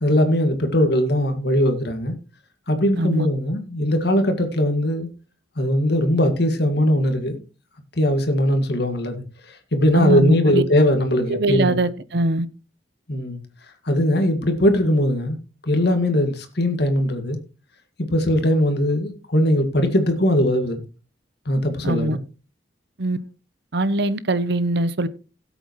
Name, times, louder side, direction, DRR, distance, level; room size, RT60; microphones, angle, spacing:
voice 1, 0.0-2.1 2.7-5.1 5.6-7.4 8.0-11.8 13.1-13.4 13.9-15.4 15.6-17.4 18.0-20.8 21.5-22.2, equal, 60° left, 2.0 m, -20 dB
voice 2, 2.9-3.3 9.9-10.6 11.3-12.5 21.8-22.2 23.0-23.2 23.7-25.1, right 2 dB, 60° right, 0.9 m, -22 dB
16.5 x 8.0 x 3.1 m
head